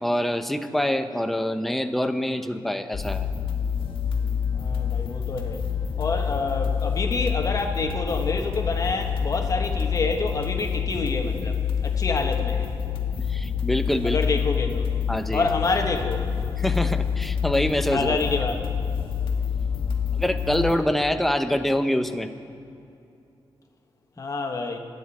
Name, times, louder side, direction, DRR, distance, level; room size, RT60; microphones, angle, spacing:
voice 1, 0.0-3.3 13.2-14.2 15.1-15.5 16.6-18.2 20.1-22.3, left 1 dB, ahead, 7 dB, 0.6 m, -25 dB
sound 1, 2.9-20.8, left 7 dB, 90° left, 1.5 m, -27 dB
voice 2, 4.5-5.6 6.0-12.7 14.0-14.9 15.3-16.2 17.9-18.6 24.2-24.8, left 3 dB, 40° left, 3 dB, 1.3 m, -27 dB
27.0 x 9.5 x 4.2 m, 2.7 s
wide cardioid pair, 155°, 9 cm